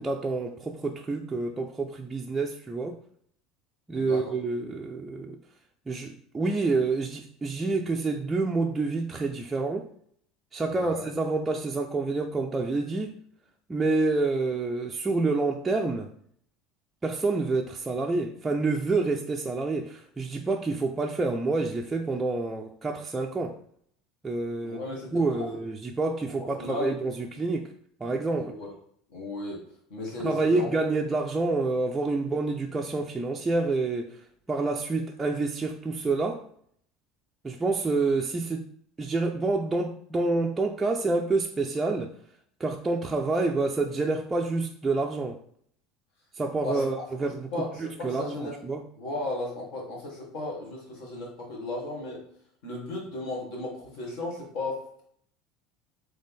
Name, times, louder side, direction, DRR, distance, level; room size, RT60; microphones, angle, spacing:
voice 1, 0.0-3.0 3.9-5.4 5.9-9.9 10.5-13.2 13.7-16.1 17.0-23.6 24.2-24.8 25.1-27.7 28.0-28.5 30.2-34.2 34.5-36.4 37.4-38.7 39.0-42.1 42.6-45.4 46.4-47.5 47.8-48.8, right 3 dB, 15° right, 1 dB, 0.3 m, -28 dB
voice 2, 3.9-4.3 10.6-11.1 24.6-25.6 26.3-26.9 28.3-28.7 29.1-29.6 29.9-30.7 46.6-46.8 47.5-48.5 49.0-52.2 52.6-55.0, left 2 dB, 70° left, -2 dB, 1.9 m, -35 dB
4.0 x 3.3 x 3.6 m, 0.65 s
supercardioid pair, 135°, 0 cm